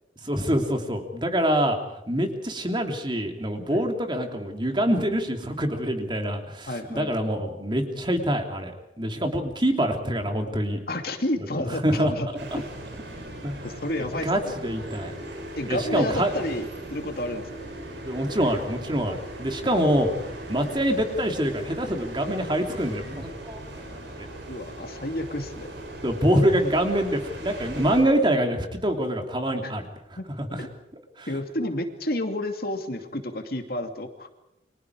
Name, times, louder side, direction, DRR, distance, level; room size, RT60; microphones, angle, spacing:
voice 1, 0.2-1.8 2.1-10.8 11.8-12.1 12.5-12.6 13.4-13.6 14.2-15.1 15.7-16.3 18.0-20.1 20.5-24.0 26.0-29.8 30.4-30.6 31.2-31.3, equal, 25° right, 4 dB, 3.1 m, -25 dB
voice 2, 6.7-7.3 10.9-12.3 13.6-14.5 15.6-17.7 19.6-19.8 24.5-25.7 29.6-29.7 30.2-30.3 30.6-30.7 31.3-34.3, left 1 dB, 55° left, 5 dB, 2.6 m, -31 dB
sound 1, 12.4-28.0, right 1 dB, 80° right, 7.7 m, -39 dB
30.0 x 24.5 x 4.9 m, 0.86 s
head